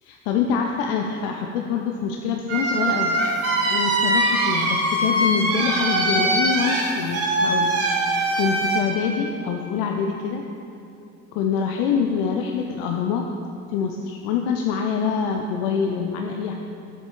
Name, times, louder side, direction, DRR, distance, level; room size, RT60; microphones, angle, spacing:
voice 1, 0.0-3.2 3.7-10.4 11.3-13.2 13.7-16.5, left 6 dB, 50° left, 2 dB, 0.6 m, -25 dB
sound 1, 2.5-8.8, right 2 dB, 35° right, 1.8 m, -22 dB
14.0 x 7.9 x 2.4 m, 2.8 s
figure-of-eight pair, 60°, 41 cm